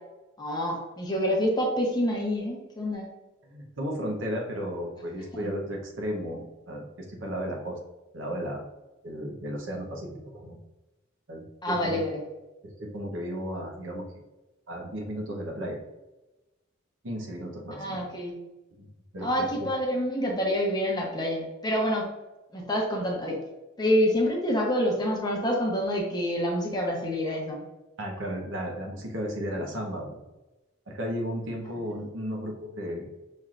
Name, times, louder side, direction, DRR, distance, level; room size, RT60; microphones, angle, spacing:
voice 1, 0.4-3.1 5.4-5.5 11.6-12.2 17.7-18.4 19.2-22.0 22.5-23.4 23.8-27.7, equal, 20° left, -1 dB, 0.9 m, -27 dB
voice 2, 3.4-7.8 8.1-8.6 9.0-10.6 11.3-12.1 12.6-14.0 14.7-15.8 17.0-18.0 18.8-19.7 28.0-30.2 30.9-33.2, equal, 65° right, 1 dB, 0.9 m, -34 dB
5.7 x 3.3 x 2.5 m, 1.1 s
head